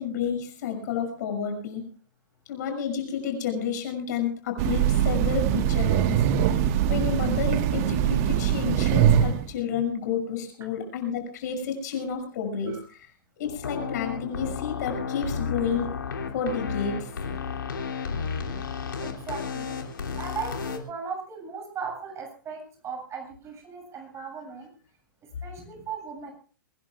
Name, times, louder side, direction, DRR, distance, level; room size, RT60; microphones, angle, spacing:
voice 1, 0.0-1.8 2.5-6.2 6.4-6.6 6.9-13.1 13.4-15.9 16.3-17.1 24.2-24.3, left 7 dB, 55° left, 4 dB, 6.2 m, -30 dB
Train, 4.6-9.5, right 10 dB, 45° right, 1.4 m, -22 dB
sound 1, 13.5-20.8, left 6 dB, 70° left, 2.8 m, -33 dB
voice 2, 17.4-17.7 19.0-19.8 20.1-24.7 25.4-26.3, right 5 dB, 25° right, 3 dB, 7.4 m, -38 dB
23.5 x 20.5 x 2.4 m, 0.40 s
figure-of-eight pair, 105°, 11 cm